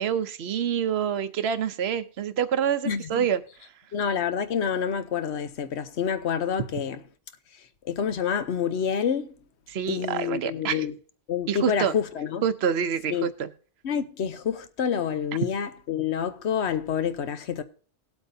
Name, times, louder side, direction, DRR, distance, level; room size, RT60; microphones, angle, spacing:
voice 1, 0.0-3.4 9.7-10.8 11.5-11.9 12.4-13.5, right 8 dB, 70° right, 1.0 m, -27 dB
voice 2, 2.8-3.3 3.9-7.0 7.9-9.3 9.9-10.9 11.3-12.4 13.1-13.3 13.8-17.6, left 7 dB, 80° left, 1.1 m, -28 dB
19.0 x 8.1 x 2.7 m
omnidirectional pair, 1.1 m